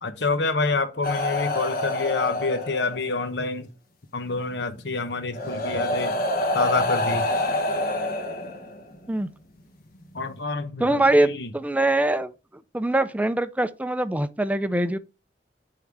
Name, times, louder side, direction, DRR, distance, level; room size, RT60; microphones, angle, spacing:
voice 1, 0.0-3.7 4.1-6.2 6.5-7.2 10.1-11.5, left 3 dB, 70° left, 1.1 m, -27 dB
sound 1, 1.0-3.2 4.5-4.6 5.3-9.0 10.0-10.2, left 1 dB, 55° left, 1.5 m, -27 dB
voice 2, 10.8-12.3 12.7-15.0, right 1 dB, 10° right, 0.5 m, -23 dB
9.0 x 3.8 x 4.6 m
head